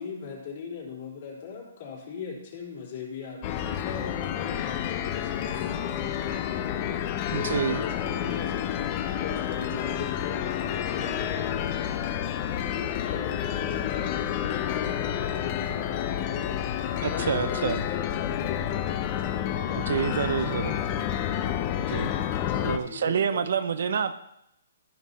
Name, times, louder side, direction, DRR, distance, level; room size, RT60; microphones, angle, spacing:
voice 1, 0.0-21.9 22.4-23.4, left 6 dB, 50° left, -2 dB, 3.6 m, -39 dB
sound 1, 3.4-22.8, left 10 dB, 35° left, 0.7 m, -30 dB
voice 2, 7.3-7.8 17.0-17.8 19.9-20.8 21.9-22.1 22.6-24.1, right 7 dB, 65° right, 11 dB, 0.7 m, -27 dB
14.0 x 5.3 x 4.2 m, 0.79 s
hypercardioid pair, 145°, 0 cm